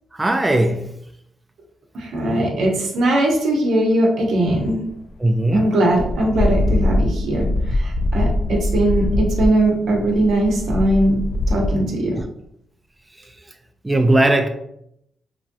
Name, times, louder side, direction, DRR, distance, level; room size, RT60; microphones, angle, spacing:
voice 1, 0.1-0.9 5.2-5.8 12.2-12.3 13.8-14.5, right 1 dB, 15° right, 6 dB, 0.3 m, -18 dB
voice 2, 1.9-4.9 5.5-11.2 11.5-12.1, right 1 dB, 75° right, 0 dB, 0.7 m, -20 dB
sound 1, 4.5-4.9 5.6-5.7 5.9-11.7, left 1 dB, 65° left, 0.3 m, -22 dB
2.9 x 2.6 x 2.6 m, 0.75 s
supercardioid pair, 60°, 0 cm